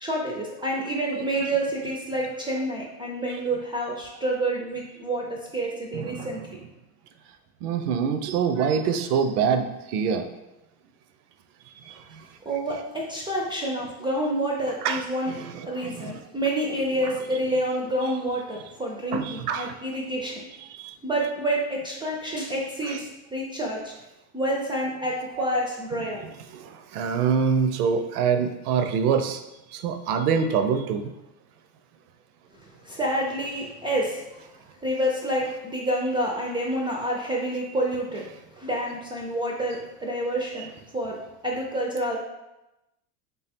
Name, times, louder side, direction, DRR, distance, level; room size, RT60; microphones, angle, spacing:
voice 1, 0.0-6.4 12.5-15.3 15.7-20.5 21.0-23.9 24.3-26.2 32.5-34.5 34.8-38.3 38.5-41.2 41.4-42.2, right 1 dB, 10° right, -2 dB, 0.3 m, -28 dB
voice 2, 5.9-6.3 7.6-9.6 9.9-10.3 14.8-15.0 15.3-15.5 15.8-16.1 19.1-19.7 26.9-29.4 29.7-31.1, right 6 dB, 85° right, 8 dB, 0.5 m, -24 dB
3.3 x 2.3 x 4.1 m, 0.96 s
supercardioid pair, 105°, 44 cm